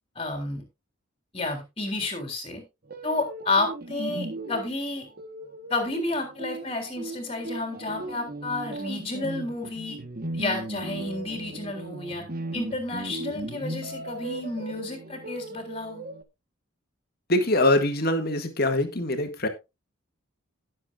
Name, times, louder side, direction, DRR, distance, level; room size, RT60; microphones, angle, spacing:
voice 1, 0.2-0.7 1.3-2.6 3.0-5.1 5.7-10.0 10.3-12.2 12.5-16.1, left 2 dB, 25° left, 3.5 m, -31 dB
sound 1, 2.9-16.2, right 2 dB, 45° right, 1.2 m, -37 dB
voice 2, 17.3-19.5, left 1 dB, 45° left, 1.8 m, -23 dB
18.0 x 7.6 x 2.5 m
head